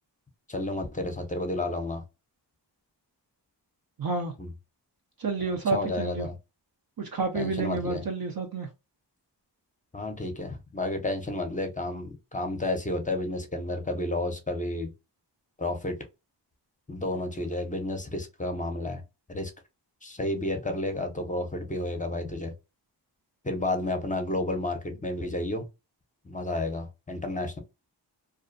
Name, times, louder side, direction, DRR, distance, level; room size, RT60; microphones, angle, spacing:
voice 1, 0.5-2.0 4.4-4.5 5.7-6.3 7.3-8.0 9.9-14.9 15.6-16.0 16.9-19.0 19.3-19.5 20.0-22.5 23.4-25.7 26.2-27.6, left 2 dB, 20° left, 0.6 m, -31 dB
voice 2, 4.0-4.3 5.2-6.3 7.0-8.7, right 4 dB, 55° right, 0.6 m, -30 dB
2.4 x 2.1 x 2.5 m
wide cardioid pair, 75°, 43 cm